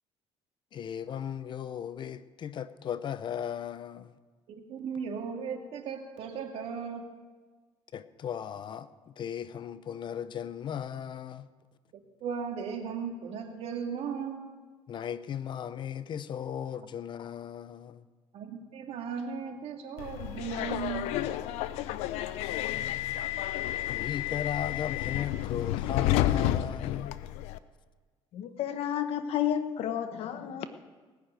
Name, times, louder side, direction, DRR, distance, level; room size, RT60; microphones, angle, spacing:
voice 1, 0.7-4.2 7.9-11.5 14.9-18.0 23.9-27.2, left 9 dB, 50° left, 0.7 m, -36 dB
voice 2, 4.5-7.0 12.2-14.4 18.3-21.1, right 6 dB, 70° right, 2.2 m, -36 dB
Subway metro underground, 20.0-27.6, left 13 dB, 90° left, 0.6 m, -31 dB
voice 3, 28.3-30.7, left 10 dB, 70° left, 1.1 m, -31 dB
18.5 x 6.6 x 8.9 m
cardioid pair, 110°, 11 cm